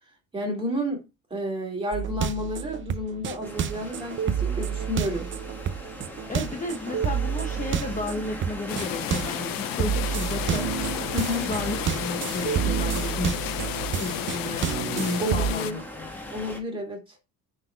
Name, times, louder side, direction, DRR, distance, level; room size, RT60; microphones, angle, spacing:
voice 1, 0.3-1.0 1.3-5.3 11.1-11.5 15.2-15.8 16.3-17.0, left 1 dB, 15° right, 2.5 m, -31 dB
sound 1, 1.9-9.4 9.8-15.5, right 8 dB, 35° right, 0.5 m, -29 dB
sound 2, 3.4-16.6, left 1 dB, 5° left, 1.6 m, -40 dB
voice 2, 6.3-10.7 11.5-13.6 13.9-14.7 14.9-16.1, left 2 dB, 20° left, 0.9 m, -33 dB
sound 3, 8.7-15.7, left 14 dB, 70° left, 0.6 m, -32 dB
9.6 x 4.0 x 4.5 m
cardioid pair, 175°, 35 cm